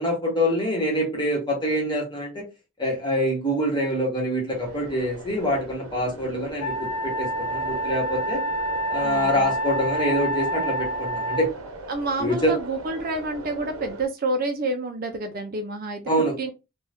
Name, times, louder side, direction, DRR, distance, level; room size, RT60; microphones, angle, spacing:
voice 1, 0.0-2.4 2.8-8.4 8.9-11.5 12.2-12.5 16.1-16.5, equal, 20° left, 1.1 m, -25 dB
sound 1, 4.5-14.1, right 2 dB, 75° right, 0.8 m, -39 dB
Wind instrument woodwind instrument, 6.6-11.5, right 1 dB, 85° left, 0.5 m, -28 dB
voice 2, 9.0-9.5 11.9-16.0 16.4-16.5, right 2 dB, 40° right, 0.4 m, -28 dB
2.6 x 2.3 x 3.4 m
head